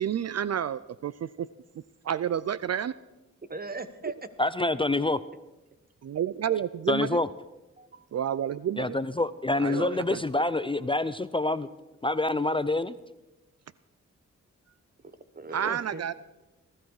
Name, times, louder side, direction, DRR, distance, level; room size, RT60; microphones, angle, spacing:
voice 1, 0.0-1.5 2.0-2.9 6.0-7.2 8.1-9.0 9.6-10.2 15.5-16.1, right 9 dB, 60° right, 17 dB, 0.4 m, -30 dB
voice 2, 3.5-4.1 7.8-8.1 9.7-10.2 15.0-16.1, right 3 dB, 30° right, 12 dB, 1.2 m, -39 dB
voice 3, 4.4-5.2 6.9-7.3 8.8-11.7 12.0-12.9, left 2 dB, 15° left, 14 dB, 0.5 m, -26 dB
19.5 x 13.0 x 4.8 m, 1.1 s
cardioid pair, 70°, 30 cm